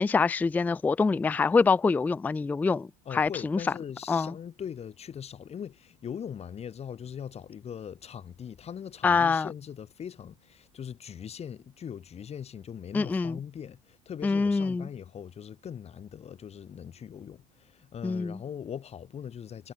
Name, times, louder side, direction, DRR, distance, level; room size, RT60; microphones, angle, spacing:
voice 1, 0.0-3.6 4.1-4.3 9.0-9.5 12.9-13.4 14.2-14.9 18.0-18.4, left 4 dB, 10° left, 0.3 m, -25 dB
voice 2, 3.1-19.7, left 8 dB, 35° left, 5.4 m, -41 dB
supercardioid pair, 100°, 19 cm